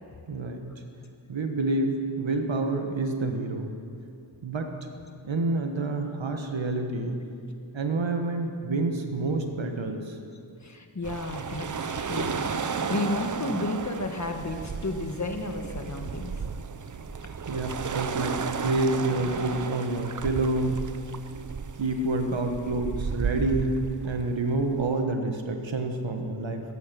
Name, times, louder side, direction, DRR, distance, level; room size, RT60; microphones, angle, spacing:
voice 1, 0.3-0.7 1.3-3.7 4.4-4.7 5.2-7.2 7.7-10.2 17.5-20.8 21.8-26.6, right 2 dB, 75° right, 5 dB, 1.5 m, -28 dB
voice 2, 10.6-12.5 12.9-16.3, left 2 dB, 40° left, 5 dB, 1.4 m, -32 dB
sound 1, 11.0-25.0, right 5 dB, 40° right, 0.7 m, -34 dB
14.0 x 10.5 x 6.9 m, 2.6 s
wide cardioid pair, 85°, 46 cm